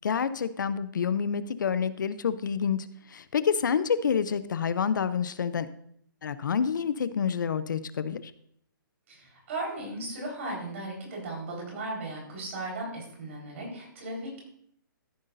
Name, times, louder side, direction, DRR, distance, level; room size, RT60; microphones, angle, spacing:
voice 1, 0.0-5.7 6.2-8.2, left 7 dB, 60° left, 14 dB, 0.6 m, -28 dB
voice 2, 9.1-14.4, right 2 dB, 35° right, -2 dB, 4.3 m, -36 dB
14.0 x 8.0 x 2.6 m, 0.68 s
hypercardioid pair, 175°, 11 cm